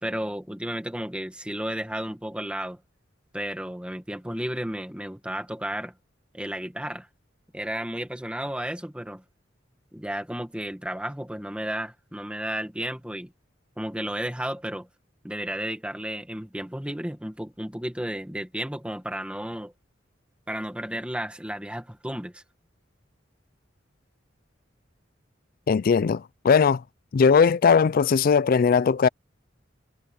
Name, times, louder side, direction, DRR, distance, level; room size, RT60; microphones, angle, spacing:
voice 1, 0.0-2.8 3.3-5.9 6.3-7.1 7.5-9.2 9.9-13.3 13.8-14.9 15.2-19.7 20.5-22.4, right 1 dB, 5° right, 1.8 m, -33 dB
voice 2, 25.7-26.8 27.1-29.1, left 6 dB, 50° left, 0.4 m, -19 dB
head